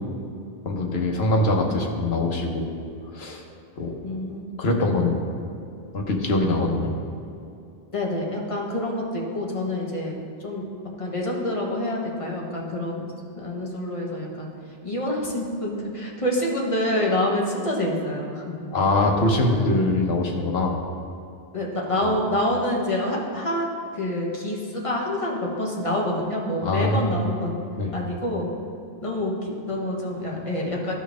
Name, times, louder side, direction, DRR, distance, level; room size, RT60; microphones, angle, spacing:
voice 1, 0.6-2.7 3.1-3.4 3.8-4.0 4.6-5.2 5.9-6.9 18.7-20.8 26.6-27.1 27.8-27.9, left 2 dB, 75° left, 1 dB, 1.2 m, -23 dB
voice 2, 4.0-4.4 7.9-10.6 11.0-14.5 14.8-18.5 19.6-19.7 21.5-23.7 23.9-27.6 27.9-28.5 29.0-30.9, left 1 dB, 35° left, -2 dB, 1.2 m, -27 dB
13.0 x 4.5 x 3.5 m, 2.6 s
omnidirectional pair, 1.1 m